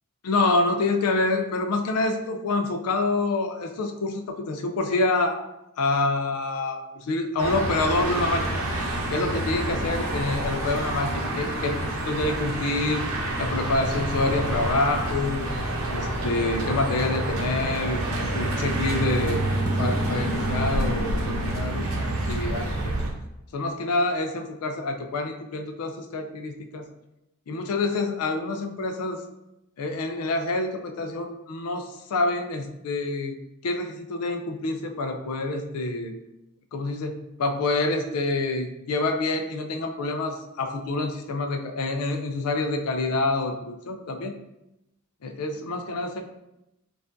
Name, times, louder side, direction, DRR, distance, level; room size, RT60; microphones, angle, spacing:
voice 1, 0.2-5.4 5.8-8.5 9.1-13.0 13.4-15.5 15.9-19.4 19.8-22.9 23.5-26.9 27.5-29.2 29.8-33.3 33.6-36.1 36.7-37.1 37.4-44.3 45.2-46.2, left 2 dB, 85° left, 5 dB, 0.4 m, -27 dB
sound 1, 7.4-23.1, right 1 dB, 70° right, 0.7 m, -28 dB
4.5 x 2.5 x 2.5 m, 0.90 s
head